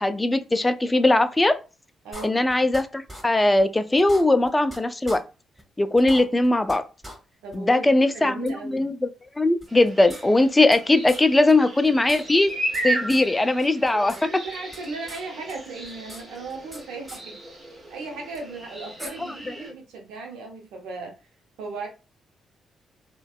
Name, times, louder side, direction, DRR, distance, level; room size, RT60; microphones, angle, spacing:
voice 1, 0.0-1.6 2.2-5.2 5.8-6.8 7.5-9.1 9.4-12.5 12.8-14.1 19.2-19.3, left 2 dB, 20° left, 11 dB, 0.3 m, -20 dB
voice 2, 2.0-2.4 7.4-8.9 13.9-17.4 17.9-21.1 21.6-21.9, right 3 dB, 80° right, 1 dB, 0.7 m, -37 dB
sound 1, 2.1-2.8 3.1-3.2 3.6-3.7 4.0-4.8 5.1-5.2 5.6-5.7 6.0-6.8 7.0-7.2 7.5-7.6 8.5-8.6 9.6-10.8 11.1-11.2 11.5-11.6 11.8-12.8 13.1-13.3 13.6-14.2 14.5-15.2 15.5-16.8 17.1-17.2 18.4-18.5 19.0-19.1, equal, 15° right, 1.4 m, -41 dB
sound 2, 9.7-19.7, right 2 dB, 35° right, 1.4 m, -35 dB
2.4 x 2.2 x 2.3 m, 0.31 s
hypercardioid pair, 45°, 0 cm